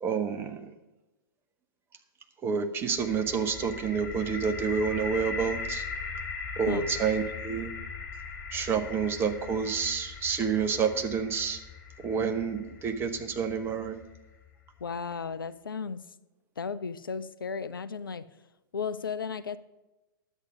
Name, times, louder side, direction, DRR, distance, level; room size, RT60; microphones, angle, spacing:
voice 1, 0.0-0.7 2.4-5.8 6.6-7.7 8.5-11.6 12.0-14.0, right 6 dB, 20° right, 7 dB, 1.0 m, -29 dB
sound 1, 3.0-14.8, left 4 dB, 35° left, 3.0 m, -40 dB
voice 2, 14.8-16.0 16.6-18.2 18.7-19.6, left 5 dB, 70° left, 14 dB, 0.6 m, -34 dB
11.0 x 8.3 x 5.3 m, 1.0 s
figure-of-eight pair, 105°, 12 cm